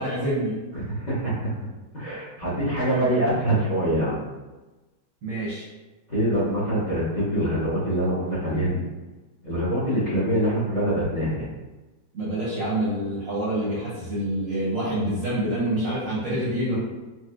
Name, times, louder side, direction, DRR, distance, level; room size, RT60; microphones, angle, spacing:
voice 1, 0.0-0.6 2.9-3.3 5.2-5.7 12.1-16.8, right 1 dB, 60° right, -7 dB, 0.9 m, -27 dB
voice 2, 0.7-1.4 1.9-4.2 6.1-8.8 9.4-11.5, right 1 dB, 35° left, -10 dB, 0.8 m, -24 dB
4.2 x 2.3 x 2.3 m, 1.2 s
omnidirectional pair, 2.0 m